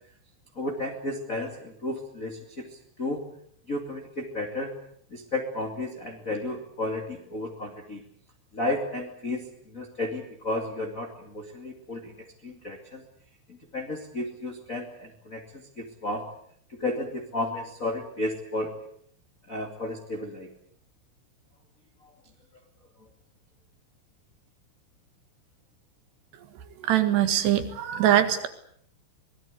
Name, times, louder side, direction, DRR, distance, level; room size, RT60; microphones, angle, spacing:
voice 1, 0.5-3.2 3.7-4.7 5.1-8.0 8.5-12.1 12.4-13.0 13.5-16.3 16.7-18.7 19.5-20.5, left 2 dB, 25° left, 1 dB, 2.0 m, -33 dB
voice 2, 26.8-28.5, right 11 dB, 70° right, 10 dB, 3.7 m, -22 dB
25.0 x 20.0 x 8.3 m, 0.65 s
omnidirectional pair, 5.3 m